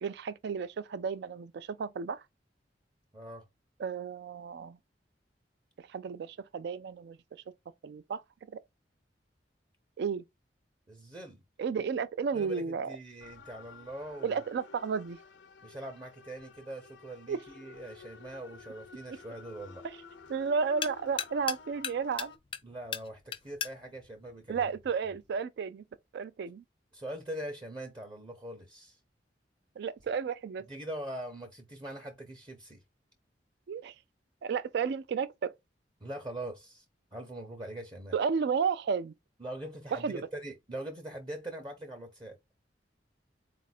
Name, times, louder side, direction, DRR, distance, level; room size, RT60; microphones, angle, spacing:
voice 1, 0.0-2.2 3.8-4.8 5.8-7.4 7.8-8.2 8.5-8.6 10.0-10.2 11.6-12.9 14.2-15.2 17.3-17.4 19.8-20.0 20.3-22.3 24.5-25.8 26.1-26.6 29.8-30.6 33.7-34.0 34.4-35.5 38.1-39.1 39.9-40.3, right 6 dB, 65° right, 0.3 m, -32 dB
voice 2, 3.1-3.5 10.9-11.4 12.3-14.4 15.6-19.9 22.6-24.7 26.9-29.0 30.7-32.8 36.0-36.8 37.1-38.1 39.4-42.4, right 1 dB, 25° right, 0.7 m, -42 dB
sound 1, 13.2-22.4, left 5 dB, 85° left, 0.6 m, -53 dB
sound 2, 17.7-25.4, left 8 dB, 30° left, 0.4 m, -42 dB
4.0 x 2.5 x 4.1 m
head